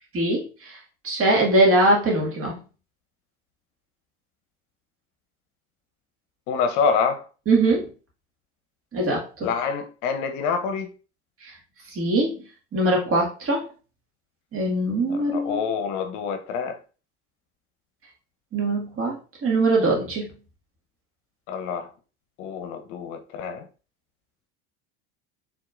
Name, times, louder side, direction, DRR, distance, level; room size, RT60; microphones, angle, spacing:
voice 1, 0.1-0.8 1.0-2.6 7.5-7.9 8.9-9.5 11.4-11.5 11.9-12.4 12.7-13.6 14.5-15.6 18.5-20.3, right 2 dB, 40° right, 2.0 m, -22 dB
voice 2, 6.5-7.2 9.4-10.9 15.1-16.8 21.5-21.9 22.4-23.6, left 6 dB, 60° left, 0.7 m, -26 dB
4.6 x 3.5 x 2.4 m
hypercardioid pair, 75°, 34 cm